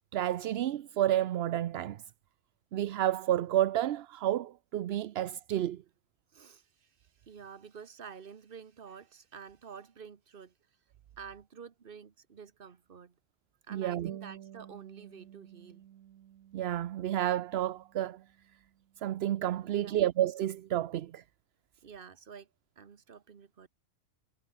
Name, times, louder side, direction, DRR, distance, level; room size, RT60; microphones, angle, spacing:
voice 1, 0.1-2.0 2.7-5.8 13.7-14.1 16.5-18.2 19.0-21.2, right 12 dB, 60° right, 0.7 m, -30 dB
voice 2, 6.3-10.5 11.2-13.2 13.7-15.9 19.6-20.0 21.8-22.5 22.8-23.7, right 6 dB, 45° right, 1.2 m, -49 dB
sound 1, 14.0-19.0, right 11 dB, 80° right, 1.2 m, -51 dB
omnidirectional pair, 1.4 m